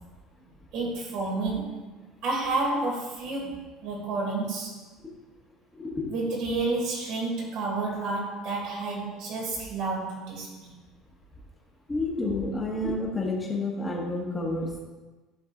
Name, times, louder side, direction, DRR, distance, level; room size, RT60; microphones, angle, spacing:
voice 1, 0.7-1.8 2.2-4.8 6.1-10.8, right 3 dB, 60° right, -1 dB, 2.2 m, -30 dB
voice 2, 5.8-6.1 11.9-14.8, left 2 dB, 15° left, -2 dB, 1.5 m, -29 dB
11.5 x 3.9 x 3.9 m, 1.2 s
cardioid pair, 155°, 0 cm